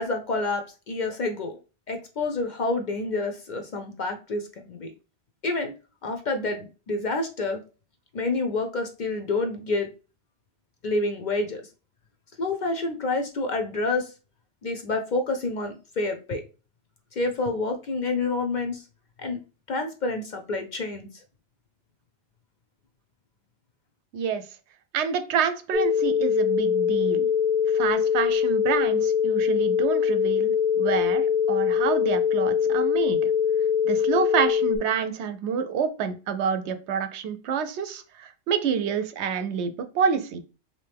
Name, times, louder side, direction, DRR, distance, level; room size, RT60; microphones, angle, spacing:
voice 1, 0.0-1.6 1.9-4.9 5.4-5.7 6.0-7.6 8.1-9.9 10.8-11.6 12.4-14.1 14.6-16.4 17.1-18.9 19.2-19.4 19.7-21.2, left 3 dB, 55° left, 5 dB, 0.6 m, -28 dB
voice 2, 24.1-24.5 24.9-27.3 27.7-33.3 33.8-40.4, right 7 dB, 80° right, 9 dB, 0.9 m, -28 dB
sound 1, 25.7-34.8, left 7 dB, 55° right, 0.7 m, -23 dB
3.3 x 2.8 x 3.3 m, 0.34 s
omnidirectional pair, 1.1 m